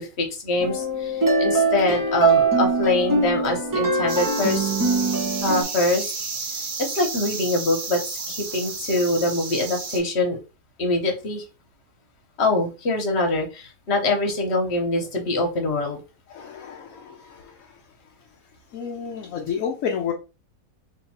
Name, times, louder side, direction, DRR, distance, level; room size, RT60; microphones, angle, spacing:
voice 1, 0.0-4.7 5.4-6.1 6.8-8.0 8.3-10.4 10.8-11.4 12.4-16.0, left 2 dB, 45° left, 3 dB, 1.2 m, -24 dB
sound 1, 0.6-5.6, right 3 dB, 20° right, 0.5 m, -22 dB
sound 2, 4.1-10.0, right 4 dB, 65° right, 1.4 m, -32 dB
voice 2, 16.3-17.7 18.7-20.1, left 7 dB, 65° left, 2 dB, 0.9 m, -30 dB
3.1 x 2.9 x 4.2 m, 0.30 s
omnidirectional pair, 1.7 m